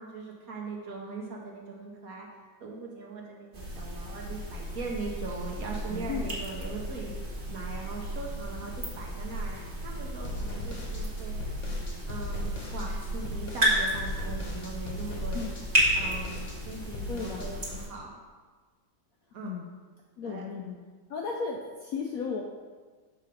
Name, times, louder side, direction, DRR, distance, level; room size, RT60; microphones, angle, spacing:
voice 1, 0.0-2.3 2.6-11.4 12.1-15.5 15.9-18.2 19.3-19.5 20.2-20.4, right 3 dB, 60° right, -1 dB, 1.1 m, -40 dB
sound 1, 3.5-17.9, equal, 35° right, 1.6 m, -33 dB
sound 2, 10.2-17.5, left 2 dB, 45° left, 1.2 m, -40 dB
voice 2, 17.1-17.5 19.4-19.6 20.2-20.8 21.1-22.4, left 5 dB, 70° left, 0 dB, 0.8 m, -34 dB
6.5 x 4.0 x 5.1 m, 1.4 s
omnidirectional pair, 2.0 m